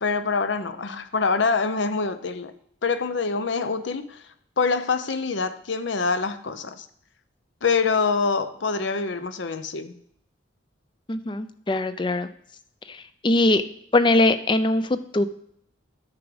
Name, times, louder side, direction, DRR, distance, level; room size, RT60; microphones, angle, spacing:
voice 1, 0.0-2.5 2.8-4.2 4.6-6.8 7.6-10.0, left 4 dB, 70° left, 11 dB, 0.7 m, -25 dB
voice 2, 11.1-12.3 12.9-13.6 13.9-15.2, left 2 dB, 25° left, 13 dB, 0.4 m, -21 dB
9.5 x 6.2 x 4.9 m, 0.69 s
head